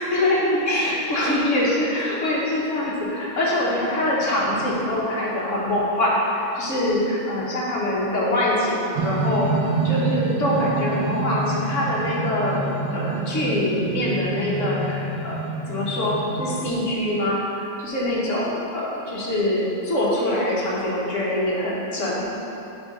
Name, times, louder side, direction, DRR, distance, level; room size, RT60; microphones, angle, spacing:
voice 1, 0.1-12.6 12.9-22.3, left 1 dB, 45° left, -6 dB, 1.1 m, -24 dB
sound 1, 9.0-17.4, right 3 dB, 85° right, 1.6 m, -27 dB
6.9 x 3.7 x 5.0 m, 2.9 s
omnidirectional pair, 2.4 m